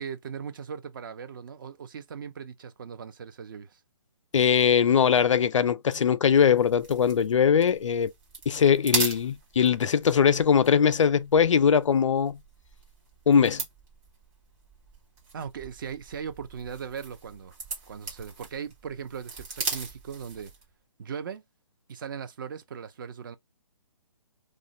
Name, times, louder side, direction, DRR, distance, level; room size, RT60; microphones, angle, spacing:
voice 1, 0.0-3.8 15.3-17.5 17.9-20.5 21.0-21.4 21.9-23.4, right 7 dB, 40° right, 0.5 m, -38 dB
voice 2, 4.3-8.1 8.5-12.4 13.3-13.6, left 7 dB, 70° left, 0.4 m, -21 dB
sound 1, 6.3-20.7, right 4 dB, 20° right, 1.4 m, -39 dB
2.4 x 2.1 x 3.7 m
hypercardioid pair, 150°, 16 cm